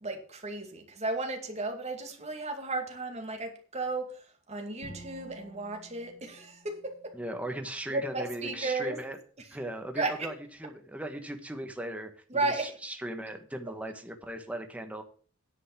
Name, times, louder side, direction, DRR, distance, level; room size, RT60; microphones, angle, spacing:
voice 1, 0.0-4.2 4.5-7.1 7.9-9.0 10.0-10.1 12.3-12.7, right 3 dB, 35° right, 4 dB, 2.3 m, -34 dB
Bowed string instrument, 4.8-7.9, equal, 55° left, 3.8 m, -51 dB
voice 2, 7.1-15.0, right 1 dB, 5° right, 5 dB, 1.2 m, -38 dB
10.0 x 5.3 x 8.3 m, 0.42 s
head